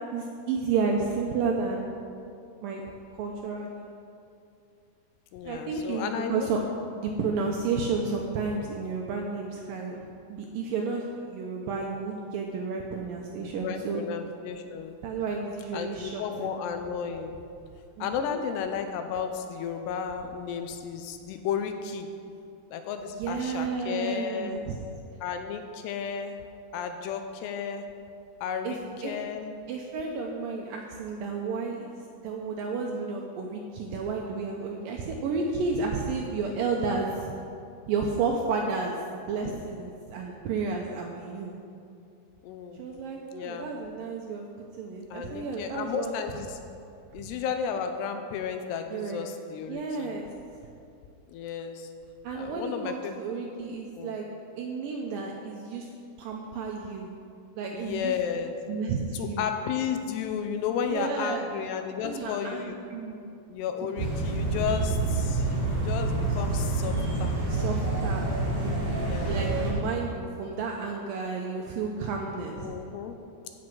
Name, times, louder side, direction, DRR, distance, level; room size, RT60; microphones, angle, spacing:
voice 1, 0.0-1.9 2.6-2.8 3.2-3.9 5.4-6.6 6.9-14.0 15.0-16.6 18.0-18.4 23.1-24.8 28.6-29.1 29.7-37.3 37.9-41.5 42.8-44.4 44.8-46.1 47.2-47.3 48.9-49.2 49.7-50.3 52.2-54.2 54.6-55.9 56.2-57.1 57.6-58.1 58.7-59.4 60.9-61.5 62.0-63.3 67.5-68.3 68.6-72.7, right 4 dB, 85° right, 1 dB, 2.0 m, -32 dB
voice 2, 5.3-6.5 13.6-15.0 15.7-17.4 18.0-22.1 22.7-24.6 25.2-26.4 26.7-27.9 28.4-28.8 29.0-29.6 42.4-42.8 43.3-43.7 45.1-46.6 47.1-50.1 51.3-51.9 52.3-53.2 54.0-54.2 57.7-58.5 59.1-62.8 63.5-67.3 68.9-69.5 72.6-73.2, left 7 dB, 85° left, 7 dB, 2.7 m, -33 dB
sound 1, 64.0-69.7, right 2 dB, 45° right, 4.6 m, -27 dB
15.5 x 6.1 x 6.2 m, 2.5 s
omnidirectional pair, 4.9 m